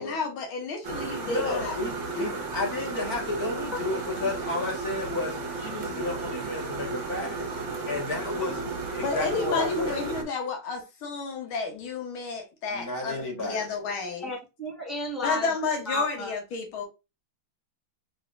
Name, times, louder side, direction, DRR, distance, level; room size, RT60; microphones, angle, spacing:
voice 1, 0.0-1.8 9.0-14.3 15.2-16.9, left 4 dB, 85° left, 1.9 m, -31 dB
sound 1, 0.8-10.2, right 4 dB, 45° right, 1.0 m, -34 dB
voice 2, 1.3-7.5 7.9-10.0 12.7-13.7, left 2 dB, 50° left, 1.9 m, -32 dB
voice 3, 14.2-15.5 15.9-16.3, equal, ahead, 1.5 m, -33 dB
4.8 x 3.3 x 2.5 m
omnidirectional pair, 2.2 m